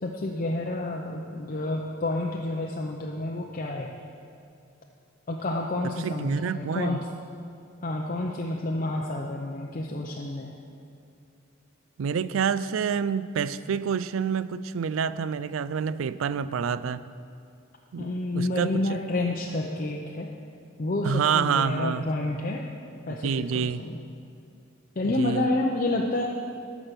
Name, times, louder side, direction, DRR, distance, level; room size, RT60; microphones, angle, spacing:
voice 1, 0.0-3.9 5.3-7.0 7.8-10.6 18.0-20.3 20.8-22.6 23.1-24.0 25.0-26.3, left 2 dB, 40° left, 0 dB, 0.6 m, -29 dB
voice 2, 5.8-7.0 12.0-17.1 17.9-19.0 21.0-22.1 23.1-23.8 25.0-25.5, right 6 dB, 85° right, 15 dB, 0.4 m, -28 dB
13.0 x 6.1 x 6.7 m, 2.5 s
head